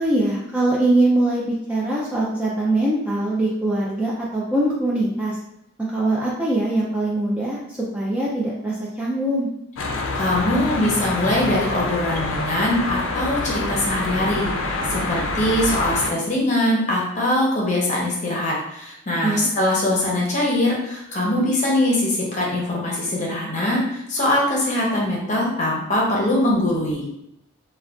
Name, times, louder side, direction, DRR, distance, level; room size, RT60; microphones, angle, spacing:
voice 1, 0.0-5.4 5.8-9.5 19.2-19.5, right 1 dB, 5° right, -6 dB, 0.3 m, -22 dB
sound 1, 9.8-16.1, left 2 dB, 75° left, 0.4 m, -26 dB
voice 2, 10.1-27.0, left 1 dB, 35° left, -3 dB, 0.7 m, -22 dB
2.4 x 2.2 x 3.4 m, 0.81 s
head